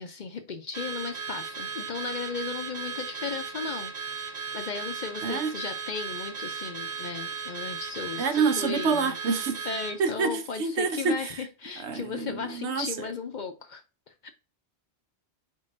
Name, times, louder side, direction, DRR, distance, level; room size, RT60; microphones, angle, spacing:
voice 1, 0.0-9.2 9.7-13.8 14.2-14.3, left 5 dB, 50° left, 0.6 m, -36 dB
Car / Alarm, 0.7-10.0, right 6 dB, 55° right, 1.0 m, -36 dB
voice 2, 5.2-5.5 8.2-9.6 10.0-11.3 11.8-13.1, right 5 dB, 85° right, 1.0 m, -27 dB
4.6 x 3.7 x 2.5 m
omnidirectional pair, 1.1 m